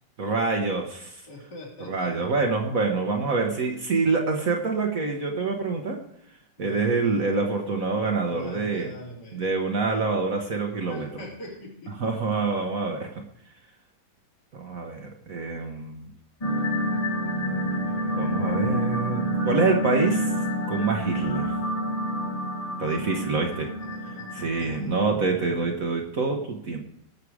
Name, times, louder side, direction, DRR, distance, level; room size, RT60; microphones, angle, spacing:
voice 1, 0.2-1.2 1.8-6.0 6.6-8.9 9.3-11.1 12.0-13.1 14.5-16.1 18.1-20.2 20.7-21.5 22.8-23.7 24.3-26.8, right 4 dB, 50° right, 2 dB, 1.4 m, -26 dB
voice 2, 1.3-2.3 6.6-7.2 8.3-9.4 10.9-12.0 22.8-24.9, left 1 dB, 60° left, -3 dB, 3.8 m, -43 dB
sound 1, 16.4-24.8, equal, 25° left, 1.1 m, -28 dB
19.0 x 6.7 x 4.9 m, 0.72 s
omnidirectional pair, 2.1 m